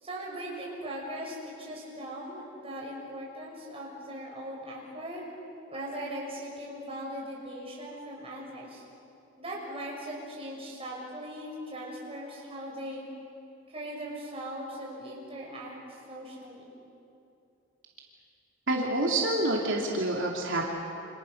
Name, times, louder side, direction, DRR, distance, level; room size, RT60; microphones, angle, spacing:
voice 1, 0.0-5.2 5.7-8.8 9.4-13.0 13.7-16.7, right 1 dB, 30° right, -3 dB, 6.5 m, -39 dB
voice 2, 18.7-20.7, right 1 dB, 65° right, -2 dB, 2.8 m, -27 dB
29.0 x 27.0 x 6.6 m, 2.7 s
head